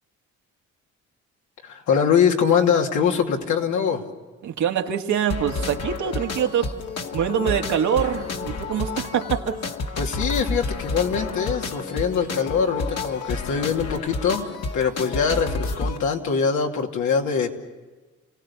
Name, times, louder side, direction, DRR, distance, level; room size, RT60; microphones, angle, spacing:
voice 1, 1.6-4.0 10.0-14.5 14.7-17.5, left 6 dB, 75° left, 2 dB, 2.7 m, -23 dB
voice 2, 4.4-6.7 7.1-9.6, right 9 dB, 70° right, 3 dB, 2.0 m, -24 dB
sound 1, 5.3-16.0, left 3 dB, 55° left, 2.0 m, -30 dB
29.5 x 17.5 x 7.1 m, 1.3 s
cardioid pair, 90°, 30 cm